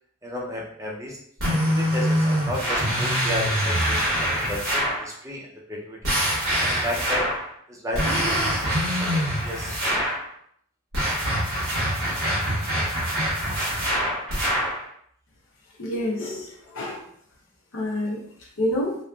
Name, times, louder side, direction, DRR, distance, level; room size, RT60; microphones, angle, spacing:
voice 1, 0.2-1.2 1.8-6.2 6.6-7.3 7.7-10.0, left 1 dB, 15° right, -2 dB, 0.5 m, -33 dB
sound 1, 1.4-5.1 6.0-7.5 7.9-10.2 10.9-14.8, equal, 90° right, 1.2 m, -24 dB
voice 2, 15.8-17.0 17.7-18.2 18.6-19.0, left 1 dB, 75° left, -3 dB, 0.6 m, -27 dB
2.9 x 2.4 x 2.3 m, 0.63 s
head